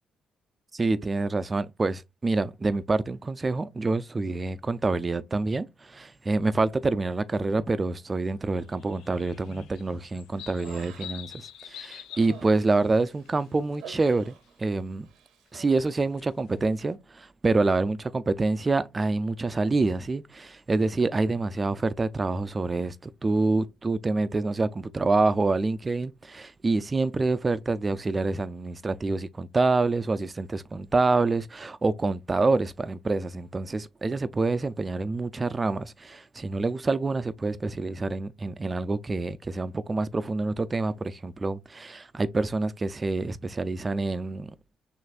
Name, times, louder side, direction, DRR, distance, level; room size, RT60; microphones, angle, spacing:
voice 1, 0.7-15.1 15.5-44.5, right 3 dB, 25° right, 0.4 m, -27 dB
sound 1, 8.6-13.8 14.1-14.5 15.7-16.9, left 11 dB, 85° left, 0.4 m, -46 dB
Human voice, 10.4-11.4 11.8-14.8 15.0-15.9, right 8 dB, 90° right, 0.7 m, -49 dB
6.3 x 2.6 x 2.4 m
cardioid pair, 90°, 0 cm